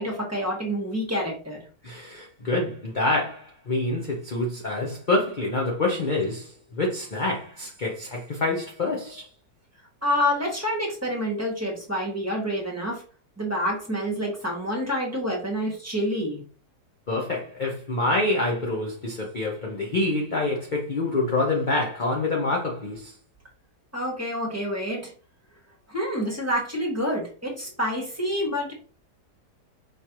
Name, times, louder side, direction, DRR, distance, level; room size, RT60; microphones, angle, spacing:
voice 1, 0.0-1.6 10.0-13.0 13.4-16.4 23.9-25.1 25.9-28.7, equal, 10° right, 1.5 m, -28 dB
voice 2, 1.8-9.3 17.1-23.1, left 2 dB, 40° left, 0.8 m, -26 dB
5.3 x 3.2 x 2.9 m
omnidirectional pair, 1.7 m